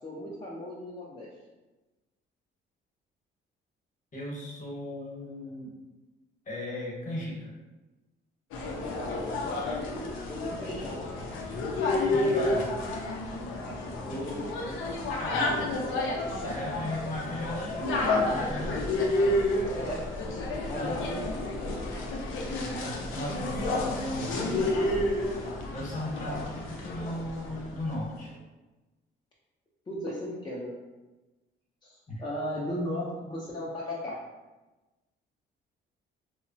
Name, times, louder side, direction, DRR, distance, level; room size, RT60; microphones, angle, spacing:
voice 1, 0.0-1.3 8.9-9.4 10.3-11.0 13.6-14.5 15.3-16.1 19.7-20.0 20.7-21.9 26.3-26.5 29.9-30.7 31.8-34.2, left 1 dB, 20° left, -5 dB, 0.4 m, -36 dB
voice 2, 4.1-5.7 6.5-7.5 12.1-12.7 15.2-15.7 16.4-18.9 20.7-20.9 22.7-25.0 25.7-28.3 32.1-32.2, left 1 dB, 40° left, -3 dB, 1.0 m, -36 dB
sound 1, 8.5-27.8, left 2 dB, 85° left, 0.5 m, -30 dB
2.8 x 2.1 x 2.6 m, 1.1 s
cardioid pair, 90°, 20 cm